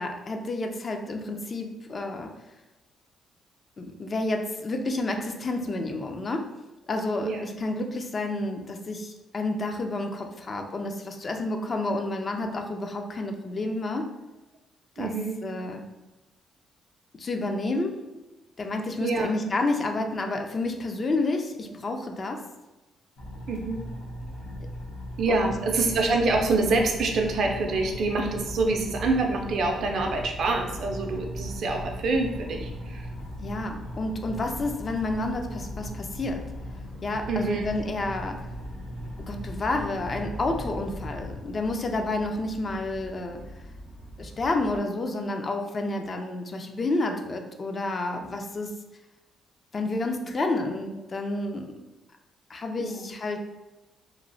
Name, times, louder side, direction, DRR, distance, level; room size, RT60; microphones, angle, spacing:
voice 1, 0.0-2.3 3.8-6.5 6.9-14.1 15.0-15.1 15.4-15.8 17.1-18.0 18.6-22.4 25.3-25.5 33.4-36.5 37.0-38.4 39.3-43.5 44.2-48.8 49.7-51.8 52.5-53.4, left 2 dB, 40° left, 4 dB, 0.3 m, -30 dB
voice 2, 15.0-15.4 19.0-19.3 23.5-23.8 25.2-33.1 37.3-37.6 52.8-53.0, right 3 dB, 65° right, 3 dB, 0.4 m, -26 dB
sound 1, 23.2-41.3, left 1 dB, 80° left, 0.7 m, -39 dB
sound 2, 26.0-44.8, right 1 dB, 60° left, 1.0 m, -44 dB
3.0 x 2.0 x 2.5 m, 1.1 s
cardioid pair, 90°, 0 cm